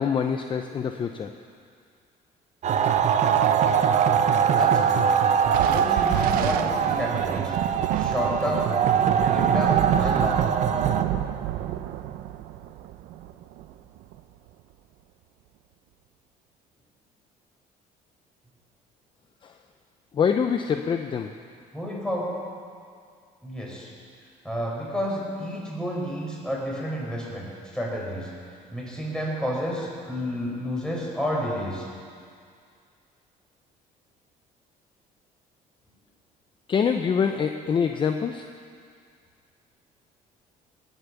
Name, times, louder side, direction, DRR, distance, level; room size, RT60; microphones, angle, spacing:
voice 1, 0.0-1.3 19.4-19.6 20.1-21.3 36.7-38.5, left 6 dB, 35° left, 6 dB, 0.6 m, -25 dB
sound 1, 2.6-11.0, right 7 dB, 50° right, 0.8 m, -22 dB
voice 2, 4.5-5.1 5.6-7.5 8.0-8.7 9.1-10.6 21.7-22.3 23.4-23.9 24.4-27.5 27.7-28.3 28.7-31.9, equal, 5° left, -3 dB, 4.2 m, -30 dB
Thunder, 5.4-14.2, right 12 dB, 90° right, 0.6 m, -30 dB
18.5 x 8.3 x 7.0 m, 2.2 s
cardioid pair, 120°, 15 cm